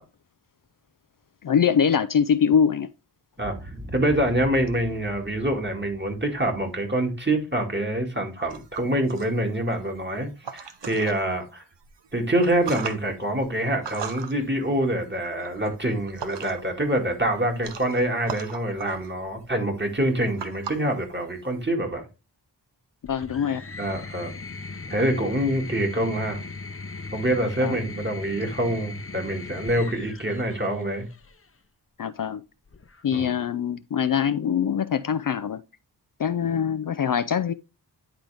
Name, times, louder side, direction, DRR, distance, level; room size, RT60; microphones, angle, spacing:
voice 1, 1.4-2.9 23.0-23.6 27.6-27.8 32.0-32.4 33.0-35.6 36.2-37.5, left 7 dB, 50° left, 0.4 m, -23 dB
Boom, 3.4-7.7, equal, 5° right, 1.5 m, -42 dB
voice 2, 3.9-11.6 12.1-22.1 23.8-24.3 24.9-26.4 27.1-31.1 33.1-33.3, right 1 dB, 25° right, 2.1 m, -26 dB
sound 1, 8.5-11.3 11.7-16.8 17.1-21.7, right 7 dB, 75° right, 0.8 m, -40 dB
sound 2, 23.0-31.5 32.7-33.3, left 3 dB, 30° left, 0.8 m, -39 dB
10.0 x 3.9 x 3.4 m
cardioid pair, 40°, 43 cm